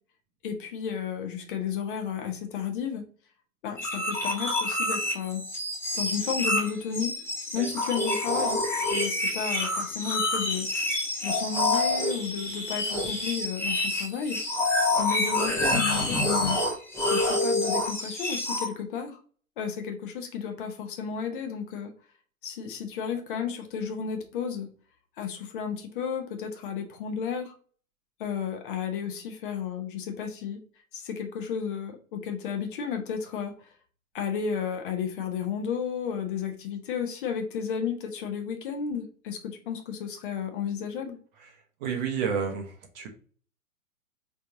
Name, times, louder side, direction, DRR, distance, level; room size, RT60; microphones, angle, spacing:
voice 1, 0.4-3.0 3.6-5.4 5.9-7.1 7.5-10.7 11.2-14.4 15.0-16.6 17.1-19.2 19.6-21.9 22.4-24.7 25.2-27.5 28.2-30.6 30.9-33.7 34.1-41.2, left 7 dB, 35° left, 5 dB, 0.8 m, -33 dB
sound 1, 3.8-18.7, left 2 dB, 5° left, 0.8 m, -27 dB
voice 2, 41.8-43.1, right 6 dB, 30° right, 2 dB, 0.9 m, -30 dB
4.3 x 3.4 x 2.6 m, 0.43 s
figure-of-eight pair, 115°, 43 cm